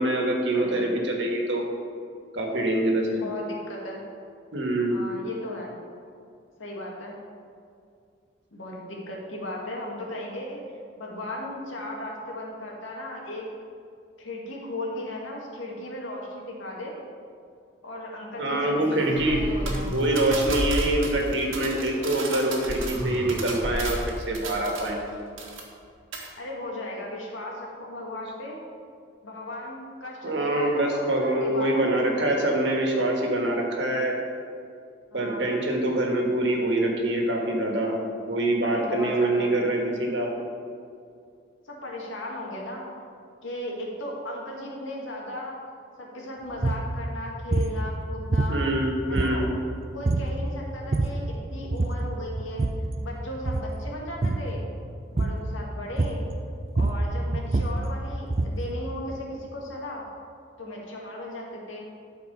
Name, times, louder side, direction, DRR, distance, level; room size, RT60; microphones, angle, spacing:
voice 1, 0.0-1.7 2.3-3.2 4.5-5.0 18.4-19.4 19.9-25.0 30.2-34.2 35.1-38.0 38.3-40.3 48.5-49.5, right 1 dB, 65° right, 0 dB, 1.6 m, -25 dB
voice 2, 0.5-1.0 3.1-4.0 4.8-5.7 6.6-7.2 8.5-10.6 11.0-13.5 14.2-17.1 17.8-19.9 26.4-28.6 29.2-32.4 35.1-35.5 38.6-39.5 41.6-42.9 43.4-45.6 46.0-48.6 49.1-49.5 49.9-52.6 53.0-54.6 55.1-56.2 56.7-60.1 60.6-61.9, left 1 dB, 80° left, -2 dB, 2.0 m, -36 dB
sound 1, 18.8-21.3 22.7-24.1, equal, 10° left, 1.0 m, -31 dB
sound 2, 19.7-25.1 25.4-25.8 26.1-26.3, right 4 dB, 90° right, 1.6 m, -36 dB
sound 3, 46.5-46.9 47.5-47.8 48.3-48.8 49.1-49.6 50.0-50.4 50.7-51.3 51.7-52.1 52.4-52.9 53.3-53.7 54.2-54.5 55.2-55.5 56.0-56.3 56.6-58.7, right 2 dB, 35° right, 0.4 m, -26 dB
12.0 x 4.7 x 5.5 m, 2.4 s
head